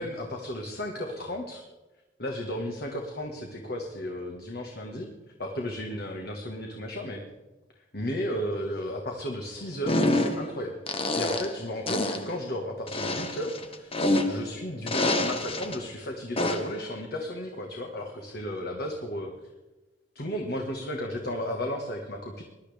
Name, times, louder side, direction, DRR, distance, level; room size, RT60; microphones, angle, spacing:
voice 1, 0.0-1.6 2.2-5.1 5.4-7.2 7.8-10.8 11.1-19.3 20.2-22.4, equal, 60° left, 1 dB, 1.7 m, -34 dB
sound 1, 9.9-10.5 10.9-11.6 11.9-12.3 12.9-14.5 14.9-15.8 16.4-16.8, left 1 dB, 30° left, 1.2 m, -27 dB
21.0 x 12.0 x 3.5 m, 1.1 s
head